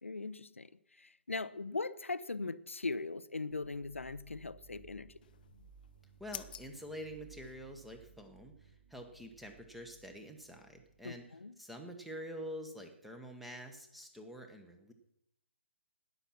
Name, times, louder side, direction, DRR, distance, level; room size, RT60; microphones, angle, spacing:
voice 1, 0.0-0.7 1.0-5.2 11.0-11.6, left 3 dB, 75° left, 0.7 m, -40 dB
sound 1, 3.5-11.2, right 7 dB, 30° right, 5.1 m, -61 dB
sound 2, 5.2-8.0, left 9 dB, 40° left, 0.7 m, -51 dB
voice 2, 6.2-14.9, equal, ahead, 1.2 m, -47 dB
13.5 x 10.0 x 5.9 m
figure-of-eight pair, 135°, 7 cm